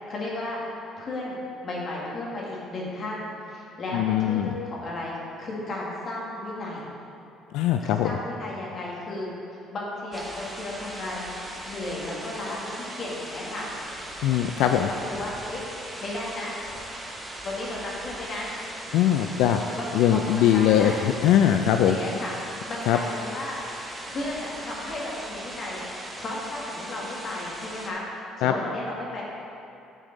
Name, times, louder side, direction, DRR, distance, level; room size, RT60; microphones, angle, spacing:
voice 1, 0.1-0.6 1.0-6.9 7.8-9.3 9.7-11.3 11.7-13.7 14.6-15.6 16.0-16.5 17.4-18.5 19.7-20.9 21.9-22.3 22.7-23.6 24.0-25.8 26.2-28.0 28.4-29.2, left 2 dB, 35° left, -4 dB, 1.8 m, -34 dB
voice 2, 3.9-4.6 7.5-8.2 14.2-14.9 18.9-22.0 22.9-23.0 28.4-28.5, left 10 dB, 80° left, 6 dB, 0.3 m, -21 dB
sound 1, 10.1-27.9, right 1 dB, 10° right, 0.9 m, -39 dB
9.8 x 6.6 x 4.0 m, 2.7 s
cardioid pair, 160°, 0 cm